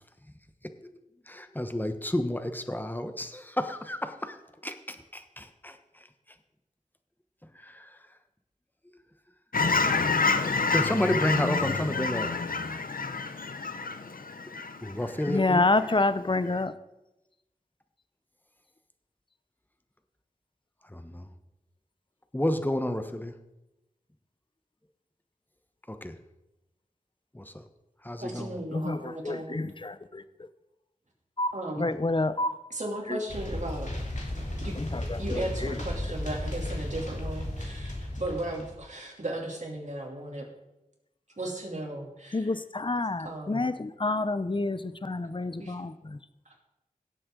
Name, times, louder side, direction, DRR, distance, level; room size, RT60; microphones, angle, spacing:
voice 1, 1.3-6.1 7.5-8.0 10.7-12.3 14.8-15.7 20.8-21.3 22.3-23.4 25.9-26.1 27.3-27.6 28.0-28.6, left 1 dB, 15° left, 8 dB, 1.0 m, -31 dB
Fowl / Chirp tweet, 9.5-15.4 15.8-16.0, left 4 dB, 75° left, 0.7 m, -28 dB
voice 2, 15.3-16.8 28.7-30.5 31.4-32.6 33.1-33.2 34.8-35.8 42.3-46.2, left 2 dB, 35° left, 13 dB, 0.6 m, -28 dB
voice 3, 28.2-29.6 31.5-31.9 32.7-33.9 34.3-34.8 35.2-40.5 41.4-42.4 43.2-43.6 45.6-45.8, right 1 dB, 55° right, -1 dB, 2.9 m, -36 dB
sound 1, 33.3-38.7, left 1 dB, 55° left, 2.9 m, -34 dB
17.0 x 7.7 x 3.8 m, 0.94 s
wide cardioid pair, 45°, 15 cm